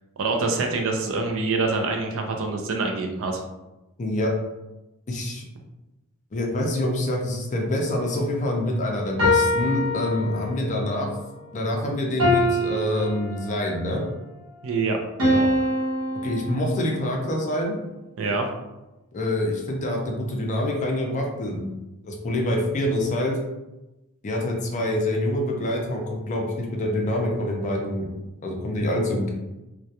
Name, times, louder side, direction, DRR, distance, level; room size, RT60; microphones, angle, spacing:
voice 1, 0.2-3.4 14.6-15.5 18.2-18.5, right 3 dB, 65° right, 3 dB, 0.4 m, -26 dB
voice 2, 4.0-4.3 5.1-5.5 6.3-11.1 11.5-14.0 16.2-17.8 19.1-21.7 22.0-23.4 24.2-28.1 28.4-29.3, left 1 dB, 35° left, 0 dB, 0.4 m, -26 dB
sound 1, 9.2-10.8 12.2-13.9 15.2-17.1, left 1 dB, 80° right, 0.9 m, -24 dB
2.2 x 2.2 x 2.7 m, 1.0 s
head